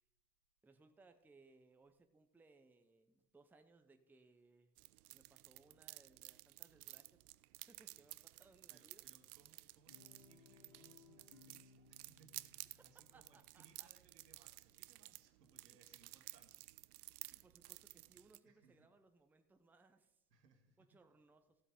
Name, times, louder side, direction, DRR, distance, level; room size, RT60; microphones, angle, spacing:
voice 1, 0.6-4.7 5.1-7.2 7.7-9.0 13.1-13.9 15.7-15.8 17.3-20.2 20.8-21.6, right 3 dB, 5° right, 7 dB, 0.7 m, -67 dB
sound 1, 4.8-18.4, right 19 dB, 65° right, 0.6 m, -55 dB
voice 2, 8.3-16.7 18.4-18.9 20.3-20.9, right 5 dB, 85° right, 5 dB, 1.8 m, -70 dB
Guitar, 9.9-14.2, left 4 dB, 50° left, 2.7 m, -66 dB
14.5 x 8.0 x 3.7 m, 0.84 s
hypercardioid pair, 90°, 48 cm